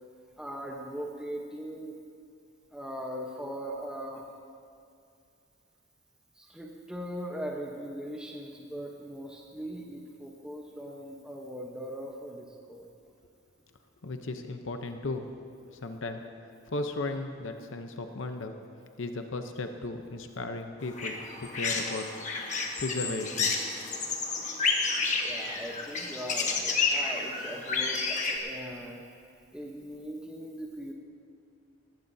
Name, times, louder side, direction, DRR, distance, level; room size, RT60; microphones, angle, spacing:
voice 1, 0.4-2.0 2.7-4.2 6.4-12.9 21.4-21.5 25.2-29.0 29.5-30.9, equal, 5° right, -1 dB, 0.9 m, -40 dB
voice 2, 14.0-15.3 15.8-16.2 16.7-18.5 19.0-22.1 22.8-23.6, left 2 dB, 75° left, 6 dB, 0.8 m, -35 dB
sound 1, 20.8-28.4, left 4 dB, 35° left, 1.3 m, -30 dB
19.5 x 16.0 x 2.7 m, 2.4 s
head